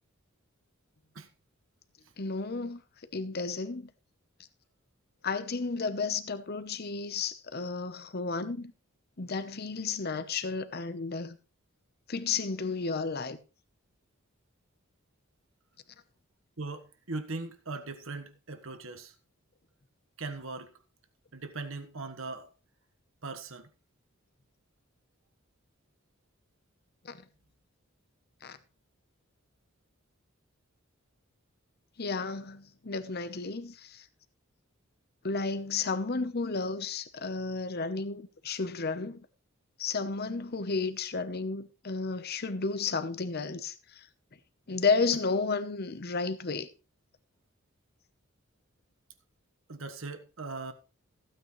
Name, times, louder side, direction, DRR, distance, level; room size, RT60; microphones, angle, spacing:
voice 1, 2.2-2.8 3.1-3.9 5.2-8.7 9.2-11.4 12.1-13.4 27.0-27.2 28.4-28.6 32.0-34.0 35.2-39.2 39.8-44.1 44.7-46.7, left 4 dB, 50° left, 0.9 m, -32 dB
voice 2, 16.6-19.1 20.2-20.7 21.3-22.5 23.2-23.7 49.7-50.7, right 3 dB, 70° right, 1.4 m, -39 dB
15.5 x 9.0 x 3.2 m
head